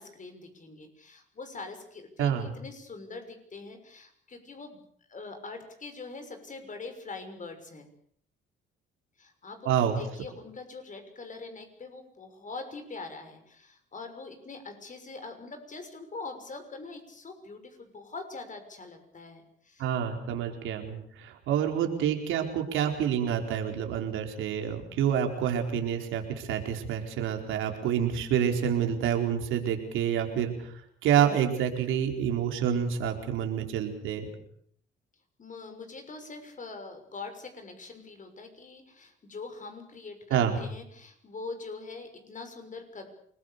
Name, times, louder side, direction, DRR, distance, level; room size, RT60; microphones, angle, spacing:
voice 1, 0.0-4.8 5.1-7.9 9.2-19.9 35.4-43.1, left 3 dB, 40° left, 7 dB, 6.4 m, -43 dB
voice 2, 2.2-2.5 9.6-10.0 19.8-30.7 31.0-34.2 40.3-40.6, right 9 dB, 90° right, 4 dB, 4.5 m, -28 dB
28.0 x 21.0 x 6.9 m, 0.65 s
cardioid pair, 90°, 20 cm